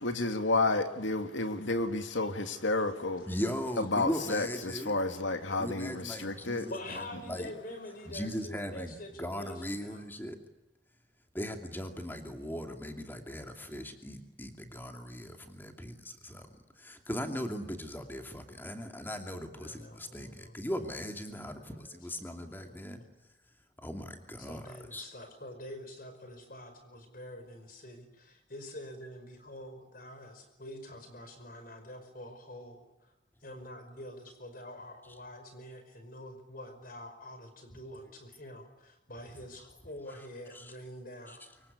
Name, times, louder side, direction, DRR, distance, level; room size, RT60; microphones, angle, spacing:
voice 1, 0.0-3.3 3.8-6.7, left 2 dB, 90° left, 7 dB, 2.4 m, -31 dB
voice 2, 3.3-4.9 5.6-7.5 8.0-10.4 11.3-16.5 16.8-23.0 23.8-25.1 40.2-40.3 40.5-40.8 41.3-41.4, equal, 10° left, 5 dB, 2.6 m, -39 dB
voice 3, 6.7-10.0 19.6-20.7 21.3-22.8 24.5-32.8 33.4-41.4, left 1 dB, 50° left, 8 dB, 5.2 m, -46 dB
25.0 x 23.5 x 9.8 m, 0.94 s
head